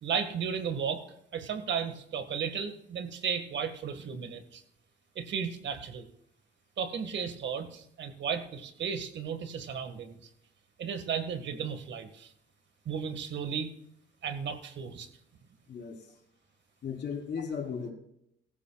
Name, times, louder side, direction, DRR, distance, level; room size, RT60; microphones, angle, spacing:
voice 1, 0.0-1.1 1.3-4.6 5.2-6.1 6.8-10.2 10.8-12.3 12.9-13.7 14.2-15.1, right 7 dB, 65° right, 8 dB, 1.8 m, -34 dB
voice 2, 15.7-16.0 16.8-17.9, left 6 dB, 60° left, 1 dB, 3.4 m, -36 dB
17.0 x 14.0 x 2.4 m, 0.75 s
cardioid pair, 90°, 20 cm